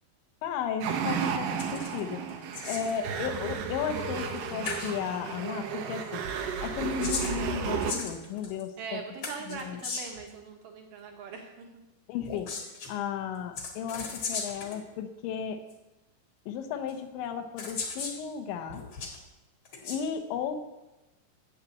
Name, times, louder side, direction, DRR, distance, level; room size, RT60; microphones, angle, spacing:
voice 1, 0.4-2.2 2.7-6.3 6.6-9.0 9.5-9.8 12.1-12.5 12.9-15.6 16.5-18.8 19.8-20.6, left 8 dB, 80° left, 7 dB, 3.2 m, -34 dB
sound 1, 0.8-7.9, right 6 dB, 90° right, 1.9 m, -33 dB
sound 2, 1.6-2.0 2.3-3.0 4.2-4.4 4.6-4.9 6.7-8.6 9.2-10.2 12.2-12.9 13.5-14.8 15.7-15.8 16.9-17.0 17.6-18.2 18.7-19.2 19.6-20.0, left 4 dB, 55° left, 1.7 m, -37 dB
voice 2, 2.8-3.3 8.8-11.8, right 5 dB, 70° right, 2 dB, 2.1 m, -42 dB
9.6 x 7.4 x 8.4 m, 1.0 s
omnidirectional pair, 5.3 m